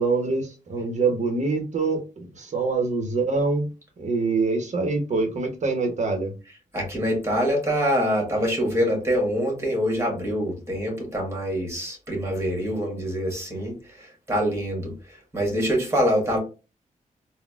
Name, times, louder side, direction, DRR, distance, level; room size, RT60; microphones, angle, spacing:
voice 1, 0.0-3.7 4.0-6.3, right 3 dB, 60° right, 5 dB, 0.9 m, -25 dB
voice 2, 6.7-14.9 15.3-16.4, equal, 20° right, 0 dB, 1.5 m, -25 dB
3.9 x 2.2 x 2.4 m, 0.31 s
wide cardioid pair, 95°, 14 cm